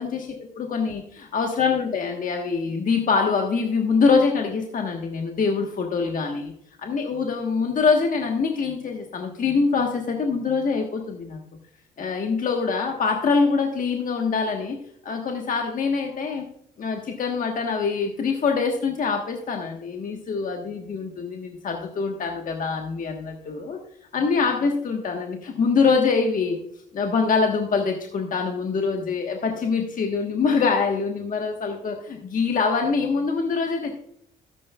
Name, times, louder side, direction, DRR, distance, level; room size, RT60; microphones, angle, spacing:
voice 1, 0.0-1.0 1.3-6.5 6.8-11.4 12.0-14.8 15.0-16.4 16.8-23.8 24.1-26.6 26.9-34.0, left 5 dB, 50° left, 2 dB, 1.3 m, -24 dB
13.0 x 9.9 x 2.4 m, 0.71 s
supercardioid pair, 75°, 18 cm